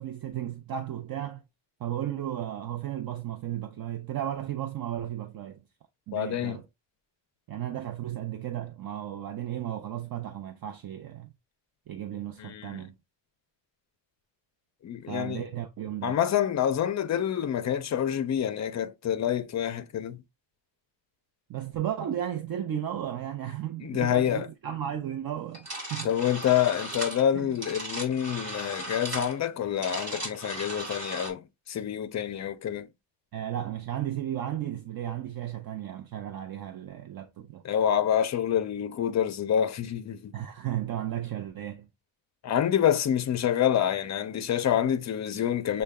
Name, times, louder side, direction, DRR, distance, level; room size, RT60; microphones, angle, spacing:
voice 1, 0.0-1.4 1.8-5.6 6.1-6.6 7.5-11.3 11.9-12.9 15.1-16.2 21.5-26.1 27.3-27.5 33.3-37.6 40.3-41.9, right 11 dB, 50° right, 0.6 m, -34 dB
voice 2, 6.1-6.6 12.4-12.8 14.8-15.4 16.0-20.2 23.8-24.5 26.0-32.9 37.6-40.3 42.4-45.8, left 10 dB, 40° left, 0.4 m, -27 dB
sound 1, 25.5-31.3, right 1 dB, 35° right, 2.5 m, -37 dB
6.4 x 2.2 x 3.4 m
wide cardioid pair, 170°, 46 cm